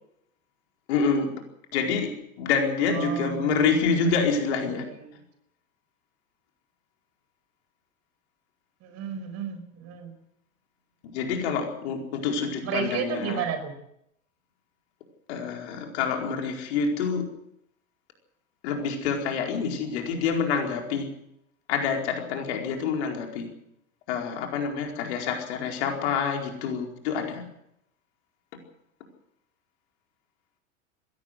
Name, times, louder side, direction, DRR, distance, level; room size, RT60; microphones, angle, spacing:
voice 1, 0.9-1.3 1.7-2.1 2.4-4.9 11.1-13.5 15.3-17.3 18.6-21.1 21.7-23.5 24.1-27.4, left 5 dB, 55° left, 2 dB, 4.7 m, -27 dB
voice 2, 2.9-3.6 4.7-5.1 8.8-10.1 12.6-13.7, right 7 dB, 40° right, 9 dB, 5.1 m, -32 dB
22.0 x 17.0 x 7.9 m, 0.77 s
figure-of-eight pair, 90°, 40 cm